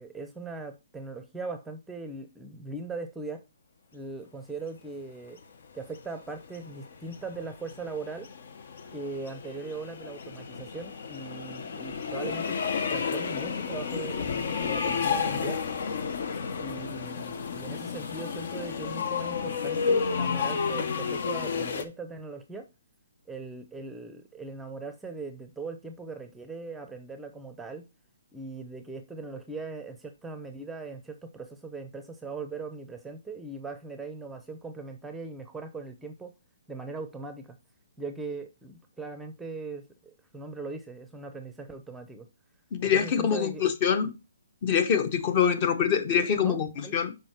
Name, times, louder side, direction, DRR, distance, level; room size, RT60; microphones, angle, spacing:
voice 1, 0.0-3.4 3.9-5.4 5.7-8.3 8.9-12.6 12.9-15.6 16.6-22.7 23.3-27.8 28.3-36.3 36.7-37.6 38.0-42.3 42.8-43.6 46.3-46.9, right 3 dB, 5° right, 0.7 m, -40 dB
sound 1, 6.0-21.8, left 5 dB, 60° left, 1.0 m, -31 dB
voice 2, 42.7-44.1 44.6-47.1, left 7 dB, 35° left, 1.0 m, -25 dB
6.3 x 5.0 x 4.5 m
hypercardioid pair, 150°, 0 cm